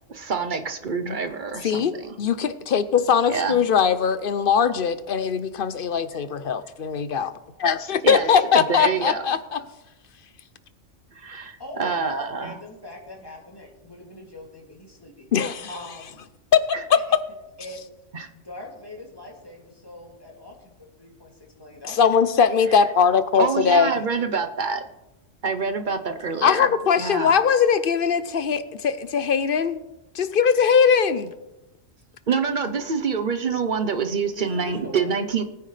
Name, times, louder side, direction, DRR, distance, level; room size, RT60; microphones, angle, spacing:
voice 1, 0.1-2.2 3.3-3.6 8.0-9.2 11.1-12.6 16.7-16.8 18.1-18.3 23.4-24.8 25.4-27.4 32.3-35.4, right 5 dB, 45° right, 7 dB, 0.9 m, -26 dB
voice 2, 1.6-7.3 7.6-9.6 15.3-15.7 16.5-16.6 16.9-17.0 21.9-23.9 26.4-29.8 30.1-31.3, left 7 dB, 55° left, 13 dB, 0.7 m, -20 dB
voice 3, 11.4-12.0 12.3-15.3 15.7-16.2 17.6-17.8 18.4-22.0 34.4-35.1, left 2 dB, 20° left, -2 dB, 2.7 m, -42 dB
19.5 x 9.4 x 3.3 m, 0.96 s
omnidirectional pair, 1.3 m